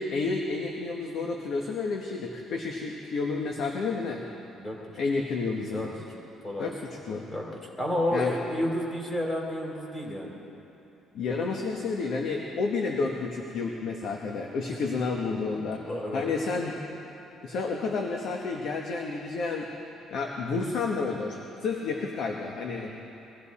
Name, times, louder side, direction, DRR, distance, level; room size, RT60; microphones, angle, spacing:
voice 1, 0.0-4.2 4.9-5.9 6.6-7.2 8.1-8.3 11.1-16.7 17.4-19.7 20.1-22.9, left 4 dB, 60° left, 1 dB, 1.2 m, -30 dB
voice 2, 7.8-10.3 15.9-16.2, left 1 dB, 20° left, -1 dB, 2.9 m, -30 dB
22.0 x 15.5 x 4.2 m, 2.9 s
cardioid pair, 150°, 0 cm